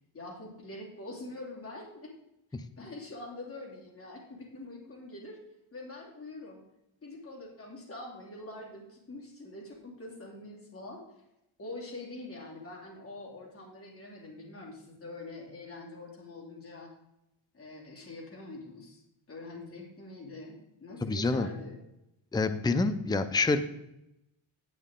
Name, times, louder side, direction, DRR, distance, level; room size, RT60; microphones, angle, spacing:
voice 1, 0.1-2.1 2.8-5.4 5.7-6.6 7.0-11.0 11.6-16.9 17.5-21.8, left 2 dB, 25° left, -2 dB, 2.8 m, -44 dB
voice 2, 21.0-21.5 22.3-23.6, left 3 dB, 10° left, 10 dB, 0.5 m, -27 dB
10.5 x 8.4 x 3.7 m, 0.85 s
cardioid pair, 135°, 49 cm